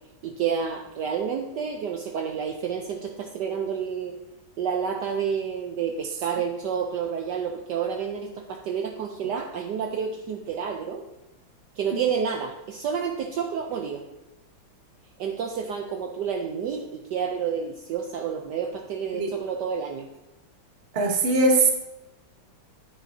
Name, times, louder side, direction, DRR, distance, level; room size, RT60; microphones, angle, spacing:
voice 1, 0.2-4.1 4.6-11.0 11.8-14.0 15.2-20.1, right 7 dB, 70° right, 3 dB, 1.2 m, -29 dB
voice 2, 20.9-21.7, right 2 dB, 35° right, 2 dB, 1.1 m, -20 dB
9.7 x 8.9 x 2.7 m, 0.98 s
omnidirectional pair, 2.2 m